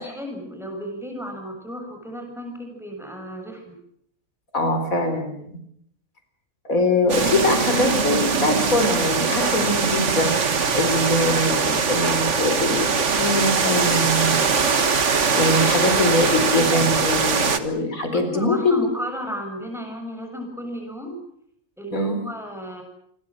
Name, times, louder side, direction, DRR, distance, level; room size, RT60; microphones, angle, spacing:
voice 1, 0.0-3.7 18.1-21.1 21.8-22.8, equal, ahead, 3 dB, 7.1 m, -33 dB
voice 2, 4.5-5.6 6.6-10.3 10.7-18.9 21.9-22.2, left 2 dB, 85° left, 7 dB, 4.6 m, -23 dB
sound 1, 7.1-17.6, right 5 dB, 60° right, 1.8 m, -21 dB
28.0 x 21.5 x 7.6 m, 0.71 s
omnidirectional pair, 1.4 m